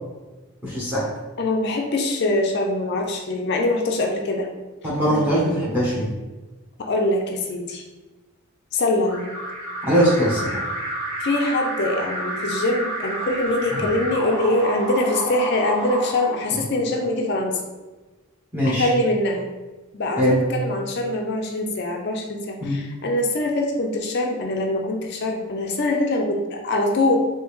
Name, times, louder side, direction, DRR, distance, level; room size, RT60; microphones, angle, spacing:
voice 1, 0.6-1.1 4.8-6.1 9.8-10.6 18.5-18.9 20.2-20.4 22.6-22.8, equal, 10° right, -7 dB, 0.8 m, -21 dB
voice 2, 1.4-4.5 5.1-5.2 6.8-7.8 8.7-9.3 11.2-17.6 18.6-19.5 19.9-27.2, left 2 dB, 50° left, 2 dB, 0.4 m, -23 dB
Alarm, 9.0-16.9, right 1 dB, 65° right, 1.5 m, -30 dB
3.5 x 2.8 x 3.1 m, 1.2 s
head